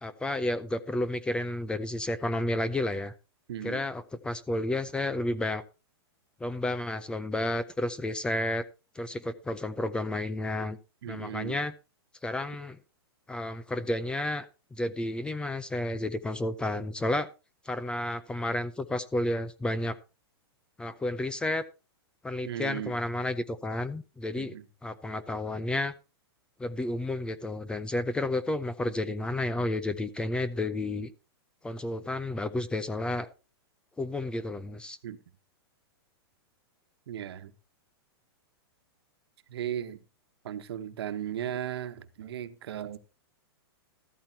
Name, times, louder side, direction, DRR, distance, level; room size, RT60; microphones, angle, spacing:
voice 1, 0.0-3.1 3.6-5.6 6.4-8.6 8.9-10.8 11.1-11.7 12.2-12.8 13.3-17.3 17.6-20.0 20.8-21.6 22.2-24.5 24.8-25.9 26.6-31.1 31.6-33.3 34.0-35.0, left 1 dB, 5° left, 0.5 m, -31 dB
voice 2, 3.5-3.8 11.0-11.6 22.4-22.9 24.4-24.6 35.0-35.2 37.1-37.5 39.5-40.0 40.4-43.0, right 10 dB, 70° right, 1.3 m, -36 dB
13.5 x 13.0 x 2.8 m
hypercardioid pair, 145°, 14 cm